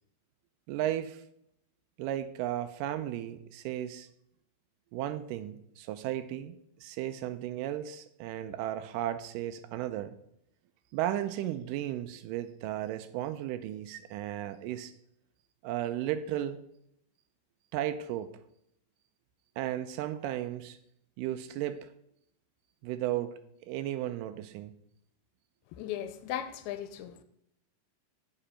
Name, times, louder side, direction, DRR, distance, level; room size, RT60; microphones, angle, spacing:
voice 1, 0.7-1.2 2.0-4.1 4.9-10.1 10.9-14.9 15.6-16.6 17.7-18.3 19.6-20.8 21.2-21.9 22.8-24.7, right 12 dB, 90° right, 1.9 m, -35 dB
voice 2, 25.7-27.2, left 11 dB, 90° left, 2.5 m, -37 dB
8.8 x 5.1 x 5.6 m
omnidirectional pair, 4.4 m